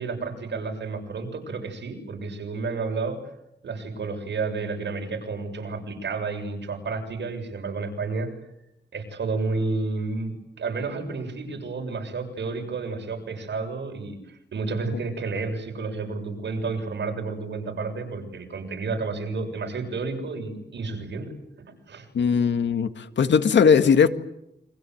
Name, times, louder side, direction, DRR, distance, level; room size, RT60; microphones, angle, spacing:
voice 1, 0.0-3.2 3.6-8.3 8.9-21.3 21.6-22.1, right 4 dB, 75° right, 7.4 m, -31 dB
voice 2, 22.1-24.1, left 6 dB, 80° left, 1.9 m, -19 dB
30.0 x 25.0 x 8.0 m
wide cardioid pair, 180°, 18 cm